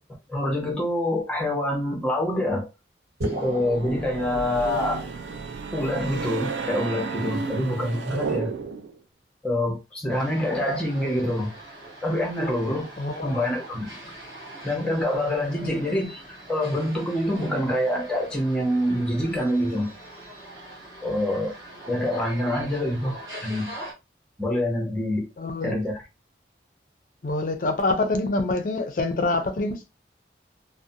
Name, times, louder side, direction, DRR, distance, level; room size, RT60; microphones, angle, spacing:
voice 1, 0.3-2.7 3.4-5.1 5.7-8.5 9.4-11.5 12.0-12.9 13.2-13.9 14.6-16.2 16.5-19.9 21.0-21.5 21.9-23.7 24.4-25.3 25.6-26.0, left 1 dB, 5° left, 0.7 m, -26 dB
sound 1, 3.2-5.1, right 1 dB, 65° right, 1.1 m, -33 dB
sound 2, 3.7-9.0, right 5 dB, 80° right, 0.4 m, -32 dB
sound 3, 10.1-23.9, right 1 dB, 20° right, 0.9 m, -42 dB
voice 2, 13.0-13.5 15.6-15.8 25.4-25.8 27.2-29.8, left 2 dB, 45° left, 0.4 m, -26 dB
2.5 x 2.1 x 2.6 m
head